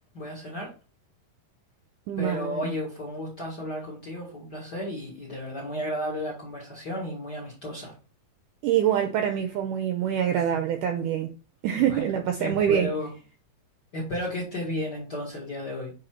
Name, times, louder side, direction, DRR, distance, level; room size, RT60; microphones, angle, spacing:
voice 1, 0.1-0.7 2.2-7.9 11.8-13.1 13.9-15.9, left 1 dB, 40° left, 1.5 m, -33 dB
voice 2, 2.1-2.7 8.6-11.3 11.6-12.9, right 9 dB, 85° right, 1.9 m, -25 dB
6.5 x 4.2 x 4.4 m
omnidirectional pair, 4.3 m